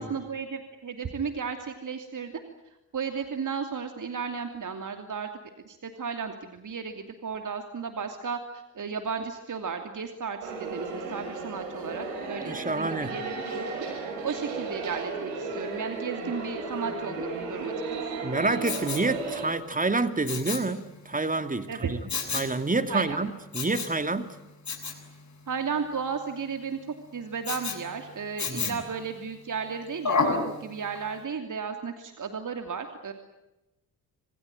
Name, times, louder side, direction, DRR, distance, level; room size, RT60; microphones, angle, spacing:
voice 1, 0.0-2.3 2.9-5.3 5.6-13.9 14.2-18.2 21.7-21.9 22.9-23.2 25.5-26.8 27.1-33.1, right 6 dB, 35° right, 6 dB, 2.9 m, -34 dB
sound 1, 10.4-19.5, right 3 dB, 75° right, 6.2 m, -34 dB
voice 2, 12.4-13.1 18.2-22.0 22.3-24.3 28.5-28.8, right 3 dB, 15° right, 10 dB, 2.6 m, -28 dB
Respiratory sounds, 18.6-19.1 20.3-20.7 22.1-22.5 23.5-24.0 24.7-25.0 27.4-27.8 28.4-28.9 30.0-30.4 31.0-31.1, left 5 dB, 35° left, 7.3 m, -29 dB
26.5 x 22.0 x 9.2 m, 0.97 s
figure-of-eight pair, 45°, 49 cm